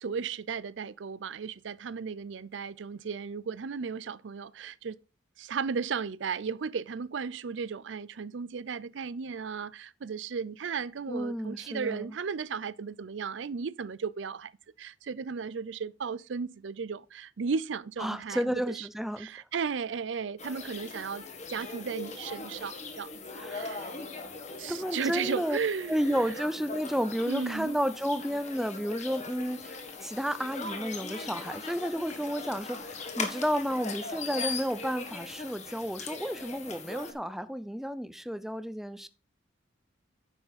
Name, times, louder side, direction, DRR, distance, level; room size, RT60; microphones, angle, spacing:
voice 1, 0.0-5.0 5.4-14.5 14.8-18.9 19.2-21.2 21.5-23.9 24.6-26.0 27.3-27.7, right 5 dB, 75° right, 0.5 m, -35 dB
voice 2, 11.1-12.2 18.0-19.3 23.3-23.7 24.7-25.6 25.9-29.8 30.0-39.1, equal, ahead, 0.5 m, -32 dB
sound 1, 20.4-37.1, left 4 dB, 40° left, 1.7 m, -40 dB
9.9 x 7.1 x 4.1 m
head